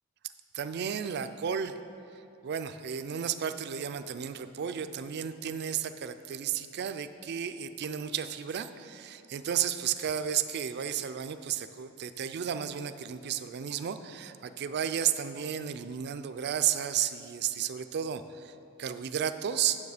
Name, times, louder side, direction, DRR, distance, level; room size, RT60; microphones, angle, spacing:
voice 1, 0.5-1.8 2.1-19.8, right 9 dB, 50° right, 10 dB, 0.4 m, -33 dB
9.4 x 6.9 x 4.9 m, 2.7 s
head